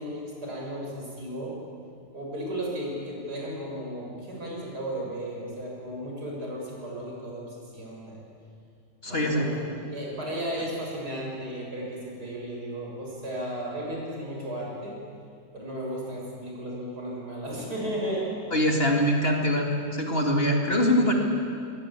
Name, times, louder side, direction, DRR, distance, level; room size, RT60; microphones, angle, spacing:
voice 1, 0.0-1.6 2.1-8.2 9.0-9.6 9.9-15.0 15.5-18.3, right 1 dB, 75° right, -2 dB, 7.0 m, -34 dB
voice 2, 9.0-9.5 18.5-21.1, equal, 35° left, 1 dB, 2.9 m, -23 dB
25.5 x 20.5 x 8.5 m, 2.4 s
omnidirectional pair, 1.7 m